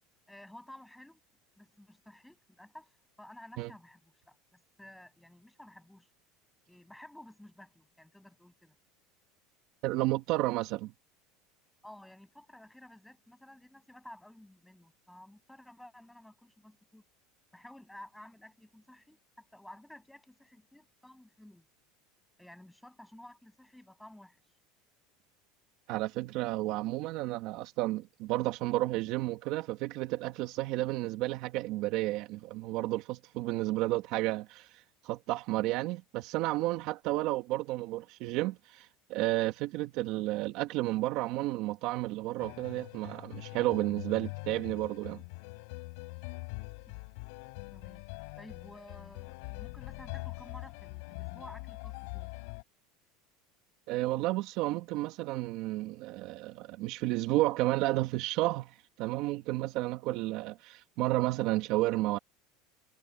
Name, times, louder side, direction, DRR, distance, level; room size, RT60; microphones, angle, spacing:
voice 1, 0.3-1.2 1.6-6.1 6.7-8.8 11.8-17.1 17.5-21.7 22.4-24.6 46.8-46.9 47.7-48.1 48.4-52.3, left 1 dB, 5° left, 7.8 m, -53 dB
voice 2, 9.8-10.9 25.9-45.2 53.9-62.2, right 18 dB, 55° right, 1.7 m, -32 dB
sound 1, 42.4-52.6, left 31 dB, 70° left, 4.1 m, -43 dB
supercardioid pair, 145°, 0 cm